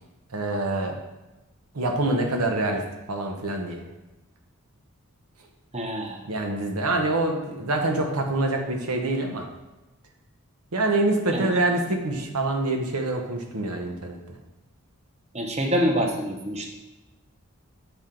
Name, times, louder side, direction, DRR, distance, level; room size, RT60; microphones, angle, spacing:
voice 1, 0.3-1.0 1.7-2.8 3.1-3.8 6.3-9.5 10.7-14.4, right 2 dB, 90° right, 3 dB, 0.9 m, -25 dB
voice 2, 5.7-6.2 11.3-11.5 15.3-16.7, equal, 30° right, 2 dB, 0.7 m, -26 dB
7.0 x 4.4 x 3.8 m, 1.0 s
head